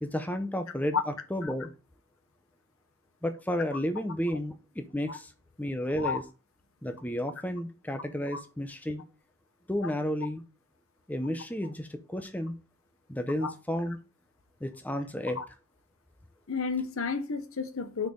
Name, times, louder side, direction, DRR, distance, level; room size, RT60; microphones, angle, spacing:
voice 1, 0.0-1.7 3.2-5.3 5.6-6.2 6.8-9.0 9.7-10.4 11.1-12.5 13.1-14.0 14.6-15.4, equal, 5° left, 0.6 m, -32 dB
voice 2, 16.5-18.1, left 5 dB, 70° left, 0.9 m, -31 dB
6.7 x 4.3 x 4.9 m
head